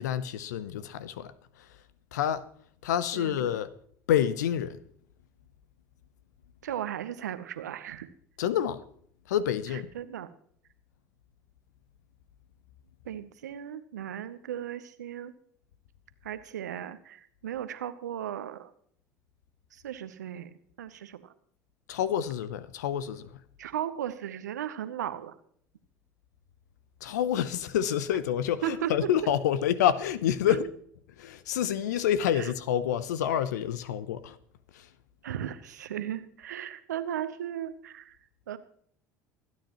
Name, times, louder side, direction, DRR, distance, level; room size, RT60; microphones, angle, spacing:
voice 1, 0.0-1.3 2.1-2.5 2.8-3.7 4.1-4.8 8.4-8.8 9.3-9.9 21.9-23.3 27.0-30.7 31.2-34.4 34.7-34.9, left 10 dB, 80° left, 0.8 m, -28 dB
voice 2, 3.1-3.5 6.6-8.1 9.7-10.3 13.0-15.3 16.2-18.7 19.7-21.3 23.6-25.4 28.6-29.1 30.5-30.6 32.3-32.5 35.2-38.2 38.5-38.6, right 10 dB, 85° right, 0.8 m, -36 dB
24.0 x 9.3 x 3.0 m
hypercardioid pair, 65°, 9 cm